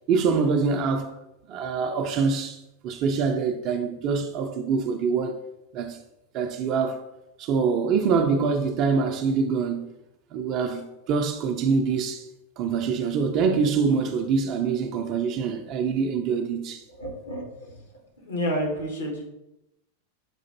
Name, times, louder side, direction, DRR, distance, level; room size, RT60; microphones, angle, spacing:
voice 1, 0.1-1.1 1.5-5.4 5.7-6.0 6.3-7.0 7.4-9.9 10.3-12.3 12.6-16.8, right 5 dB, 40° right, 0.4 m, -25 dB
voice 2, 16.9-17.8 18.2-19.3, equal, 70° left, 1.1 m, -30 dB
5.9 x 2.5 x 2.8 m
figure-of-eight pair, 90°, 0 cm